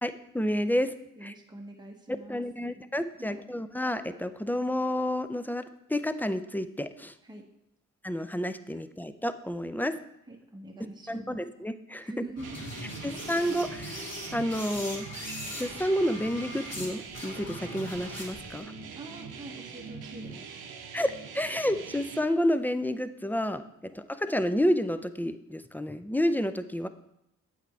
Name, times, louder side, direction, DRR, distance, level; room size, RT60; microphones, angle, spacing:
voice 1, 0.0-0.9 1.2-1.3 2.3-7.1 8.0-10.0 11.1-12.1 13.0-15.1 15.5-18.7 20.9-26.9, equal, 5° left, 11 dB, 0.4 m, -30 dB
voice 2, 1.1-2.8 3.1-3.4 7.2-7.5 10.3-11.4 12.0-13.0 18.9-20.4 23.8-23.9, right 2 dB, 10° right, 1 dB, 1.1 m, -45 dB
sound 1, 12.4-16.9 17.1-18.5, left 1 dB, 45° left, 3.1 m, -41 dB
sound 2, 12.4-22.2, right 5 dB, 80° right, 0.7 m, -43 dB
8.1 x 4.3 x 4.5 m, 0.81 s
supercardioid pair, 40°, 37 cm